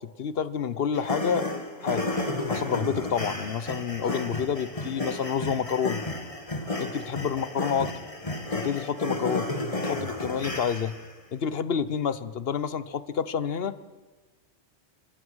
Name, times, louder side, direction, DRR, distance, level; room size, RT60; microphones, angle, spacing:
voice 1, 0.2-1.5 1.8-2.1 2.5-6.0 6.8-7.9 8.5-9.5 9.9-10.9 11.3-13.8, left 7 dB, 60° left, 14 dB, 1.1 m, -28 dB
sound 1, 0.9-11.1, left 2 dB, 30° left, 2.0 m, -32 dB
26.0 x 16.0 x 6.3 m, 1.3 s
omnidirectional pair, 1.1 m